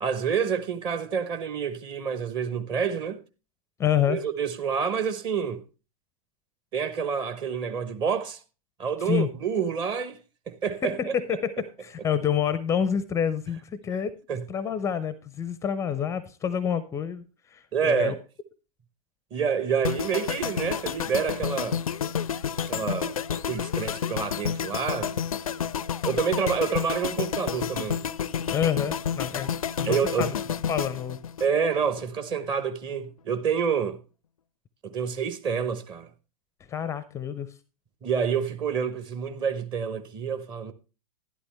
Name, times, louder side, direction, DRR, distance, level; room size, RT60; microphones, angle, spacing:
voice 1, 0.0-3.2 4.1-5.6 6.7-8.4 8.8-10.2 10.5-11.1 14.3-14.4 17.7-18.2 19.3-21.8 22.7-25.3 26.0-28.0 29.8-30.3 31.4-34.0 34.8-36.1 38.0-40.7, right 6 dB, 25° right, 1.0 m, -28 dB
voice 2, 3.8-4.2 9.0-9.3 10.8-14.2 14.5-18.1 28.5-29.5 29.8-30.4 30.7-31.2 36.7-37.5, left 8 dB, 15° left, 0.5 m, -28 dB
sound 1, 19.8-32.0 32.3-32.6, left 8 dB, 70° left, 0.4 m, -30 dB
11.5 x 11.0 x 3.2 m
figure-of-eight pair, 100°, 19 cm